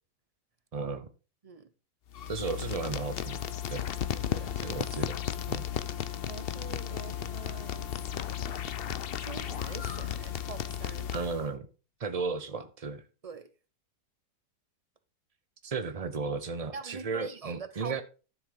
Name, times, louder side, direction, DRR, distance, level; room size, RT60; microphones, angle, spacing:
voice 1, 0.7-1.1 2.3-3.4 3.7-3.9 4.6-5.2 5.5-5.7 11.1-11.7 12.0-13.0 15.6-18.0, right 4 dB, 80° right, 0.3 m, -34 dB
sound 1, 2.1-11.5, left 9 dB, 85° left, 0.5 m, -35 dB
Brass instrument, 2.7-11.4, left 8 dB, 65° left, 1.4 m, -49 dB
voice 2, 4.1-4.5 6.2-7.9 9.2-11.1 13.2-13.5 16.7-18.0, right 5 dB, 30° right, 0.6 m, -44 dB
12.5 x 7.5 x 3.8 m
omnidirectional pair, 1.8 m